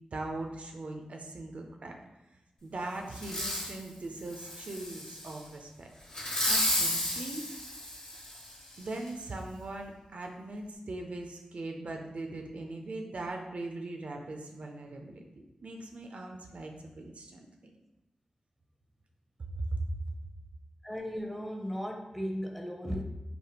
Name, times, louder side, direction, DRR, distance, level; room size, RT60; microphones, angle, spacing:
voice 1, 0.1-1.9 2.6-5.9 6.4-7.5 8.8-15.2 15.6-17.7 19.5-19.9, right 2 dB, 65° right, 2 dB, 0.4 m, -40 dB
Fireworks, 3.1-3.8 4.3-5.3 6.1-8.5 9.1-9.2, left 1 dB, 45° left, 1.0 m, -32 dB
voice 2, 20.8-23.0, equal, 5° left, 1 dB, 0.5 m, -36 dB
3.3 x 2.0 x 2.8 m, 0.95 s
cardioid pair, 45°, 2 cm